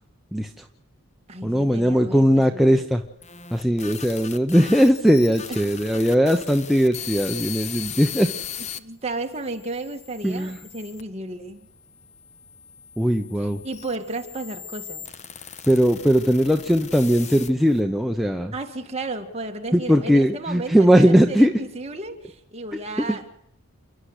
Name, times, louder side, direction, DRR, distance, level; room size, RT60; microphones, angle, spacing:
voice 1, 0.3-0.6 1.4-3.0 3.5-8.3 10.2-10.6 13.0-13.6 15.7-18.5 19.7-21.5 23.1-23.2, equal, ahead, 3 dB, 0.8 m, -19 dB
voice 2, 1.3-2.8 5.5-5.6 8.8-11.7 13.4-15.1 18.5-23.4, right 2 dB, 30° right, 4 dB, 2.1 m, -33 dB
sound 1, 3.0-8.8 9.5-11.0 11.8-17.8, left 8 dB, 30° left, 0.9 m, -38 dB
29.0 x 11.5 x 8.3 m, 0.81 s
head